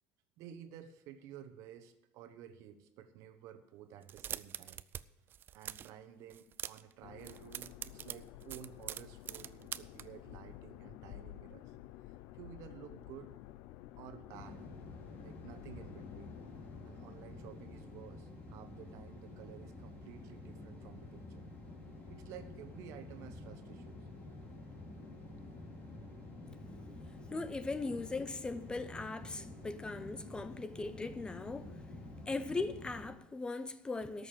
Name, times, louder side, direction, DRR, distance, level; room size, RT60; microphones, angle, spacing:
voice 1, 0.4-4.8 5.5-11.7 12.3-13.3 14.0-14.7 15.2-16.4 16.8-21.5 22.1-24.1 26.9-27.4 29.4-29.5, right 9 dB, 65° right, 1.1 m, -53 dB
sound 1, 4.0-5.0 5.3-5.9 6.3-6.9 7.2-10.0, right 10 dB, 40° right, 0.4 m, -43 dB
sound 2, 7.0-18.0, left 15 dB, 75° left, 0.4 m, -52 dB
sound 3, 14.3-33.1, left 2 dB, 30° left, 3.7 m, -49 dB
voice 2, 27.1-31.7 32.3-34.3, left 3 dB, 15° left, 0.7 m, -39 dB
13.0 x 6.7 x 7.5 m
supercardioid pair, 115°, 6 cm